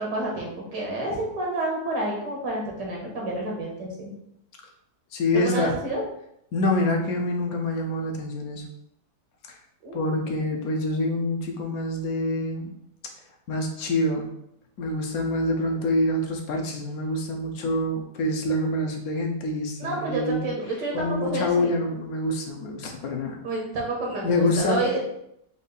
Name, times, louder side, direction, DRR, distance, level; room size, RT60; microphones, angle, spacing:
voice 1, 0.0-4.1 5.3-6.0 9.8-10.1 19.8-21.7 23.4-25.0, right 2 dB, 85° right, -2 dB, 1.9 m, -29 dB
voice 2, 5.1-5.8 6.5-8.6 9.9-12.7 13.5-14.3 14.8-20.5 20.9-23.4 24.2-24.8, left 1 dB, 65° left, 2 dB, 1.1 m, -26 dB
5.3 x 2.5 x 3.9 m, 0.76 s
omnidirectional pair, 1.8 m